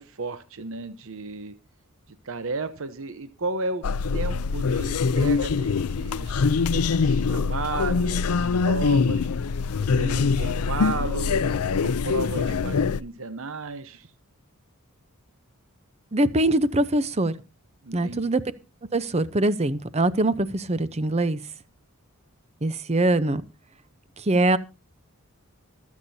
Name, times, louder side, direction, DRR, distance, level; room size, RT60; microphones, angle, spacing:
voice 1, 0.0-1.5 2.1-3.8 4.1-6.4 6.7-9.3 9.8-11.4 11.8-14.1 17.8-18.3, right 3 dB, 65° right, 0.9 m, -34 dB
sound 1, 3.8-13.0, left 5 dB, 85° left, 0.5 m, -24 dB
voice 2, 16.1-17.3 17.9-18.4 18.9-21.4 22.6-23.4 24.2-24.6, right 2 dB, 30° right, 0.7 m, -23 dB
24.5 x 8.4 x 2.8 m
head